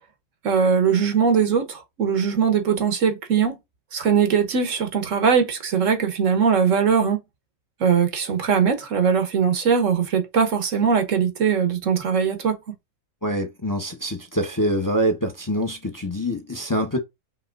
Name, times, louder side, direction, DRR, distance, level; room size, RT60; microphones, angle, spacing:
voice 1, 0.4-3.6 3.9-7.2 7.8-12.6, right 6 dB, 65° right, 1.3 m, -20 dB
voice 2, 13.2-17.0, equal, 15° left, 0.8 m, -25 dB
5.9 x 3.0 x 2.4 m
omnidirectional pair, 1.4 m